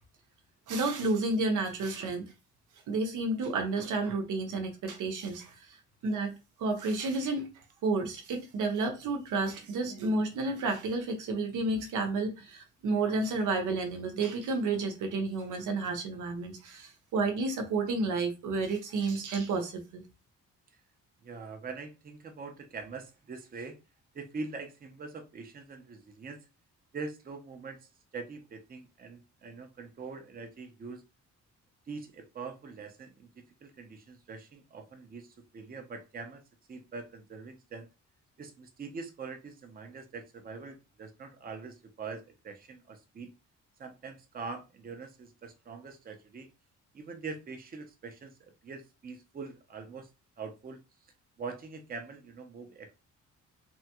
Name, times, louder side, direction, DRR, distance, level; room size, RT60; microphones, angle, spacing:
voice 1, 0.7-2.2 2.9-5.8 6.0-6.3 6.6-7.5 7.8-20.0, right 3 dB, 85° right, 0.8 m, -31 dB
voice 2, 21.2-23.8 24.1-26.4 26.9-27.8 28.1-31.0 31.9-33.3 33.6-35.3 35.5-36.4 36.7-37.9 38.4-43.3 43.8-46.5 46.9-48.3 48.6-50.1 50.4-50.8 51.4-52.9, right 4 dB, 30° right, 0.6 m, -43 dB
3.5 x 2.2 x 2.8 m
cardioid pair, 125°, 30 cm